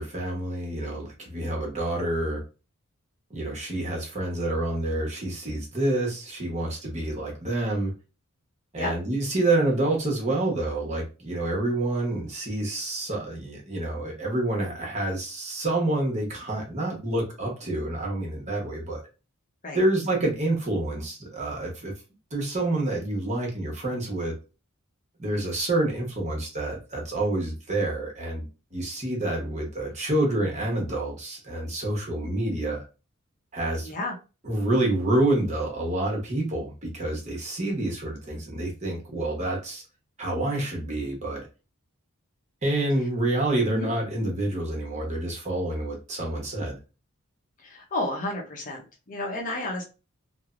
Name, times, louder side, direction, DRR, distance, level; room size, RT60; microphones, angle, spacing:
voice 1, 0.0-2.4 3.3-7.9 8.7-19.0 19.7-21.9 22.3-24.3 25.2-32.8 33.5-33.9 34.4-39.8 40.2-41.5 42.6-46.8, right 1 dB, 30° right, 0 dB, 0.9 m, -28 dB
voice 2, 33.8-34.1 43.6-43.9 47.6-49.8, left 2 dB, 40° left, -1 dB, 0.7 m, -31 dB
3.2 x 2.0 x 2.4 m, 0.31 s
head